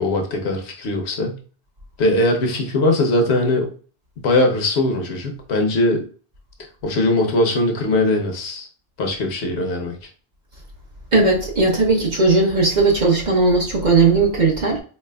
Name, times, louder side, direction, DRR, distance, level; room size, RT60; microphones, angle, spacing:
voice 1, 0.0-1.4 2.0-3.7 4.2-6.0 6.8-8.7 9.0-9.9, left 2 dB, 75° left, 1.0 m, -20 dB
voice 2, 11.1-14.8, right 3 dB, 45° right, 0.9 m, -17 dB
4.0 x 3.3 x 2.2 m
omnidirectional pair, 1.1 m